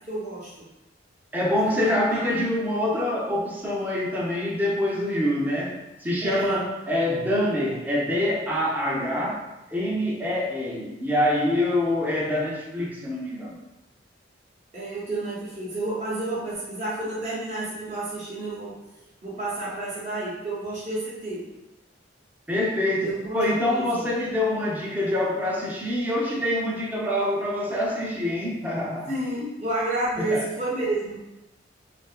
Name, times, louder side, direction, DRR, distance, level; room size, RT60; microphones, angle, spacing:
voice 1, 0.1-0.7 1.5-2.5 6.2-6.6 14.7-18.7 19.2-21.5 23.0-24.1 29.1-31.2, right 2 dB, 40° right, -11 dB, 0.8 m, -30 dB
voice 2, 1.3-13.6 22.5-29.1 30.2-30.4, left 1 dB, 10° right, -4 dB, 0.4 m, -25 dB
2.6 x 2.5 x 2.4 m, 0.95 s
head